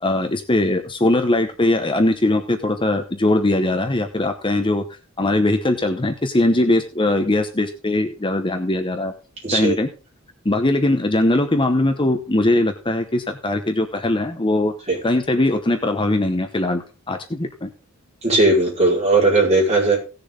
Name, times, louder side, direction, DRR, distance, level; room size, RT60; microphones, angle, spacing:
voice 1, 0.0-4.9 5.2-9.1 9.5-9.9 10.4-14.7 15.0-17.7, left 1 dB, 25° left, 7 dB, 0.9 m, -20 dB
voice 2, 9.4-9.7 14.9-15.0 18.2-20.0, right 2 dB, 30° right, -2 dB, 5.0 m, -17 dB
17.0 x 6.8 x 3.8 m, 0.32 s
head